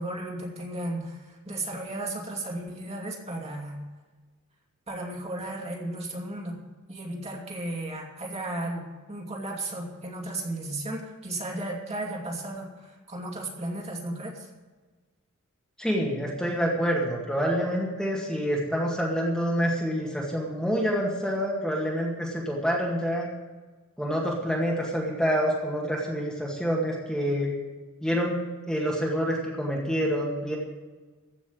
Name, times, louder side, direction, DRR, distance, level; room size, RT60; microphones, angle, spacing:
voice 1, 0.0-3.8 4.9-6.6 6.9-14.5, right 1 dB, 30° right, -1 dB, 2.8 m, -34 dB
voice 2, 15.8-23.3 24.0-27.5 28.0-28.4 28.7-30.6, equal, 5° left, -3 dB, 2.1 m, -27 dB
15.5 x 6.2 x 9.3 m, 1.3 s
head